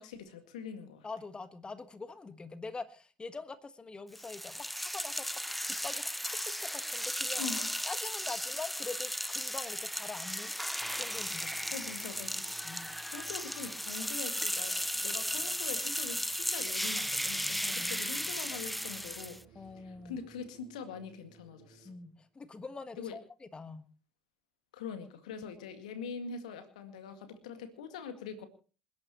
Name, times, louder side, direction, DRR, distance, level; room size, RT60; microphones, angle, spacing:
voice 1, 0.0-1.1 7.4-7.7 11.7-12.5 13.1-21.9 23.0-23.2 24.7-28.5, left 6 dB, 75° left, 8 dB, 2.0 m, -43 dB
voice 2, 1.0-5.3 5.7-7.4 7.8-10.5 11.0-11.7 12.6-12.9 17.6-18.1 19.5-20.2 21.8-23.8, left 3 dB, 25° left, 11 dB, 1.5 m, -44 dB
sound 1, 4.2-19.4, equal, ahead, 0.7 m, -35 dB
sound 2, 10.8-14.2 17.2-22.2, right 5 dB, 60° right, 2.1 m, -60 dB
sound 3, 13.1-20.5, right 5 dB, 40° right, 3.2 m, -62 dB
27.5 x 11.5 x 3.1 m, 0.37 s
figure-of-eight pair, 55°, 4 cm